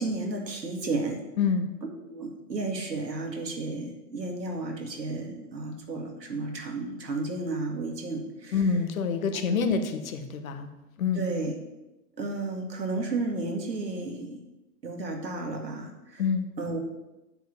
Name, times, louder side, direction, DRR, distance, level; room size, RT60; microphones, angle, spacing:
voice 1, 0.0-1.2 2.1-8.6 9.3-9.5 11.2-11.5 12.2-14.4 14.8-16.2 16.6-16.8, right 2 dB, 90° right, 2 dB, 2.1 m, -32 dB
voice 2, 1.4-1.7 8.5-10.7 11.0-11.2 16.2-16.5, left 5 dB, 55° left, 8 dB, 1.3 m, -26 dB
9.1 x 4.7 x 7.2 m, 0.99 s
hypercardioid pair, 130°, 49 cm